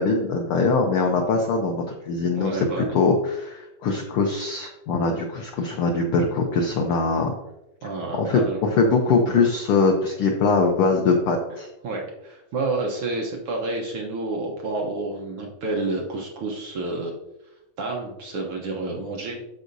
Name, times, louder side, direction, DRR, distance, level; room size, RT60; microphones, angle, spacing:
voice 1, 0.0-7.3 8.2-11.7, left 4 dB, 80° left, 2 dB, 1.2 m, -22 dB
voice 2, 2.3-2.9 7.8-8.6 11.8-17.1 17.8-19.4, right 2 dB, 65° right, -1 dB, 1.5 m, -29 dB
12.5 x 4.9 x 2.7 m, 0.92 s
omnidirectional pair, 3.4 m